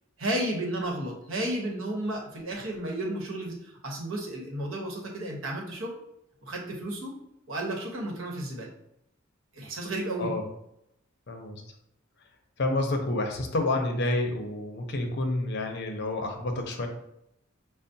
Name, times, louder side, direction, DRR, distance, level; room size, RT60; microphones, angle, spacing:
voice 1, 0.2-6.0 6.4-7.1 7.5-8.7 9.5-10.3, right 1 dB, 75° right, -1 dB, 0.9 m, -33 dB
voice 2, 11.3-11.6 12.6-16.9, left 2 dB, 55° left, 4 dB, 0.6 m, -29 dB
5.4 x 2.0 x 2.6 m, 0.79 s
head